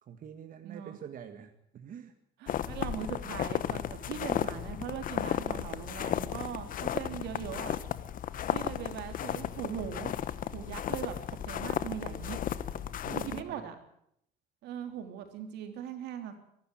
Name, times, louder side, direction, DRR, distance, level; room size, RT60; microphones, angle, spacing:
voice 1, 0.0-2.1 3.0-3.1 13.0-13.6, right 8 dB, 55° right, 7 dB, 1.8 m, -45 dB
voice 2, 0.6-1.0 2.4-7.8 8.5-10.1 10.5-12.4 13.1-13.7 14.6-16.4, right 9 dB, 85° right, 6 dB, 3.3 m, -40 dB
sound 1, 2.5-13.4, left 10 dB, 55° left, 1.1 m, -34 dB
23.5 x 12.0 x 9.2 m, 0.73 s
cardioid pair, 110°, 17 cm